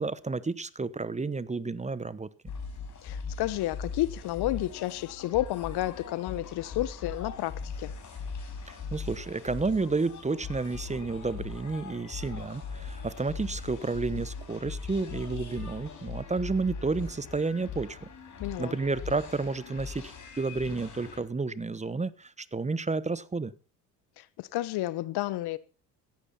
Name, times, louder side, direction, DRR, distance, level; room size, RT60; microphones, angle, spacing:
voice 1, 0.0-2.3 8.7-18.1 18.6-23.5, right 3 dB, 15° right, 1.1 m, -31 dB
sound 1, 2.5-21.2, left 5 dB, 40° left, 5.5 m, -40 dB
voice 2, 3.0-7.9 18.4-18.8 24.2-25.6, left 16 dB, 55° left, 1.0 m, -31 dB
16.5 x 14.5 x 4.3 m
hypercardioid pair, 65°, 47 cm